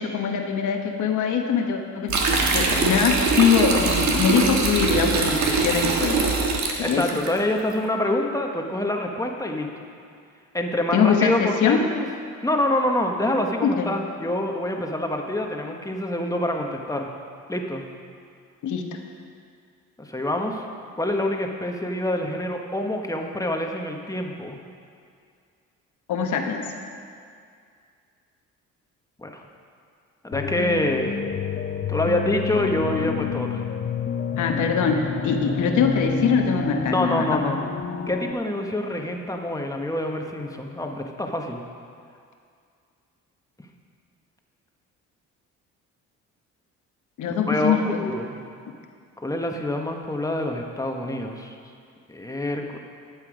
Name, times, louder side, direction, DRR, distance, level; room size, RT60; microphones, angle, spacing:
voice 1, 0.0-6.3 6.8-7.1 10.9-11.8 13.6-13.9 18.6-19.0 26.1-26.7 34.4-37.5 47.2-47.9, left 7 dB, 75° left, 3 dB, 1.2 m, -23 dB
sound 1, 2.1-7.3, right 4 dB, 65° right, 1.6 m, -22 dB
voice 2, 6.8-9.9 10.5-12.1 12.4-17.1 17.5-17.8 20.0-20.6 21.0-24.6 29.2-29.4 30.2-31.2 31.9-33.6 36.9-37.6 38.1-41.6 47.3-48.3 49.2-51.5 52.1-52.8, left 1 dB, 10° left, 2 dB, 1.2 m, -26 dB
sound 2, 30.3-38.3, left 6 dB, 40° left, 0.8 m, -29 dB
11.5 x 8.3 x 5.1 m, 2.3 s
cardioid pair, 90°, 30 cm